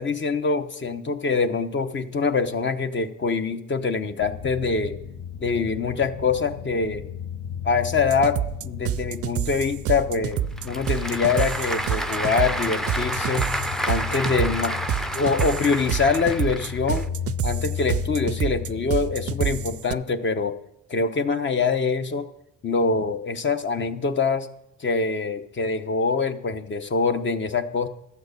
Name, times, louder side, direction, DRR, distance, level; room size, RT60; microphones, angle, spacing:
voice 1, 0.0-5.0 5.4-7.0 7.6-13.5 13.9-14.8 15.1-17.1 17.4-20.6 20.9-22.3 22.6-24.5 24.8-27.9, left 4 dB, 40° left, 8 dB, 1.0 m, -24 dB
sound 1, 4.2-19.8, left 8 dB, 60° left, 1.2 m, -35 dB
sound 2, 8.1-19.9, right 11 dB, 50° right, 0.5 m, -28 dB
Applause / Crowd, 10.3-17.0, equal, ahead, 0.5 m, -30 dB
12.5 x 8.1 x 6.7 m, 0.83 s
cardioid pair, 90°, 30 cm